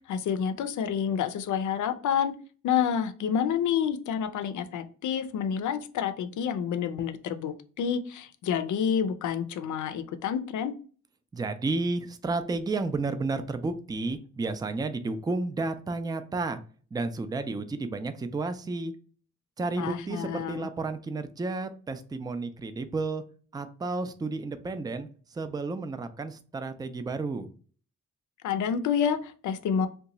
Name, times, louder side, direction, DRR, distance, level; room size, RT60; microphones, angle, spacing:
voice 1, 0.1-2.3 2.6-10.7 19.8-20.7 28.4-29.9, left 8 dB, 75° left, 11 dB, 0.5 m, -28 dB
voice 2, 11.3-16.6 16.9-18.9 19.6-23.2 23.5-27.5, right 3 dB, 15° right, 9 dB, 0.3 m, -32 dB
2.8 x 2.3 x 3.9 m, 0.41 s
cardioid pair, 90°, 30 cm